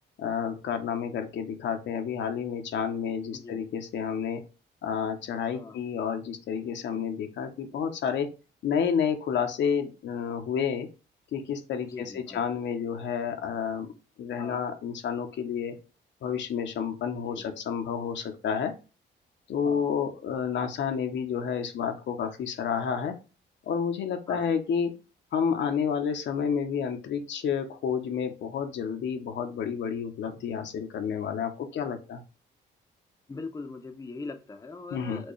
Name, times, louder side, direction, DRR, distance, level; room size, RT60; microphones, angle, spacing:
voice 1, 0.2-4.4 4.8-8.3 8.6-10.9 11.3-13.9 14.2-15.7 16.2-18.7 19.5-23.1 23.7-24.9 25.3-32.2 34.9-35.2, left 7 dB, 65° left, 6 dB, 0.7 m, -30 dB
voice 2, 11.8-12.4 14.4-14.6 17.2-17.4 19.6-19.9 24.3-24.5 33.3-35.3, left 3 dB, 15° left, 5 dB, 0.6 m, -41 dB
4.4 x 2.3 x 3.0 m, 0.31 s
cardioid pair, 90°, 20 cm